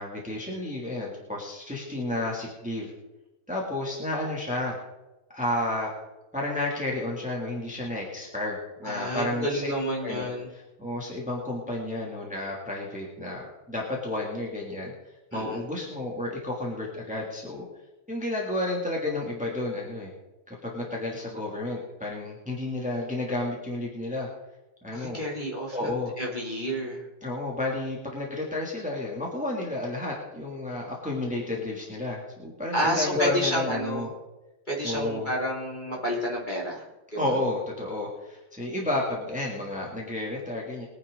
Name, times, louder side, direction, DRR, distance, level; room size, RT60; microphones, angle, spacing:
voice 1, 0.0-2.9 3.5-4.7 5.3-5.9 6.3-9.7 10.0-10.3 10.8-14.9 15.3-17.6 18.1-20.1 20.5-24.3 24.8-25.2 25.7-26.1 27.2-34.1 34.8-35.3 37.2-40.9, left 2 dB, 5° right, -3 dB, 2.9 m, -31 dB
voice 2, 8.8-10.5 15.3-15.6 24.9-27.1 32.7-34.1 34.7-36.9 37.1-37.4, equal, 20° left, -4 dB, 3.4 m, -30 dB
22.5 x 9.8 x 4.1 m, 1.0 s
omnidirectional pair, 2.3 m